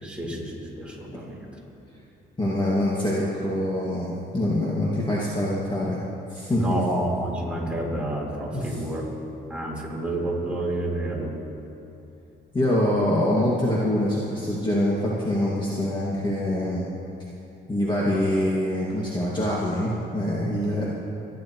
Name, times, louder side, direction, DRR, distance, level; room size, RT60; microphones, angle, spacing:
voice 1, 0.0-1.5 6.5-9.0 9.5-11.3, right 1 dB, 5° right, -5 dB, 3.9 m, -29 dB
voice 2, 2.4-6.0 6.3-6.6 8.5-8.8 12.5-16.9 17.7-20.9, left 1 dB, 25° left, -6 dB, 2.0 m, -25 dB
29.5 x 10.5 x 3.1 m, 2.9 s
cardioid pair, 90°, 20 cm